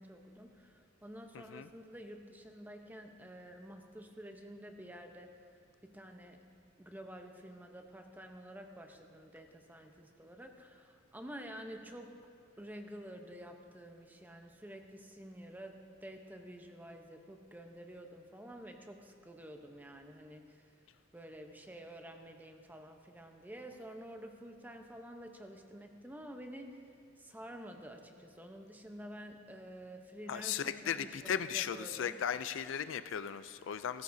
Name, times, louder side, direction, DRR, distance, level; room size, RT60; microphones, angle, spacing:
voice 1, 0.0-5.5 5.8-6.4 6.8-12.1 12.6-20.7 21.1-26.8 27.2-32.2, equal, 10° right, 4 dB, 0.8 m, -50 dB
voice 2, 30.3-34.0, left 8 dB, 75° left, 12 dB, 0.4 m, -36 dB
18.0 x 15.0 x 2.7 m, 2.3 s
head